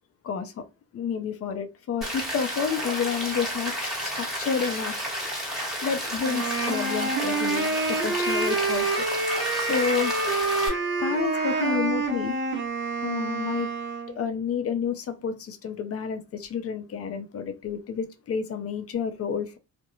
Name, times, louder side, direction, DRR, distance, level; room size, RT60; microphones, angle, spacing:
voice 1, 0.2-0.6 0.9-3.7 4.0-5.0 5.8-9.0 9.6-10.1 11.0-12.4 13.0-13.7 14.2-19.6, left 7 dB, 50° left, 0.6 m, -30 dB
Rain, 2.0-10.7, equal, ahead, 1.2 m, -32 dB
Wind instrument woodwind instrument, 6.2-14.2, right 3 dB, 40° right, 0.8 m, -28 dB
Chicken rooster, 8.9-11.8, left 2 dB, 20° left, 0.9 m, -34 dB
2.4 x 2.1 x 2.9 m
cardioid pair, 90°, 30 cm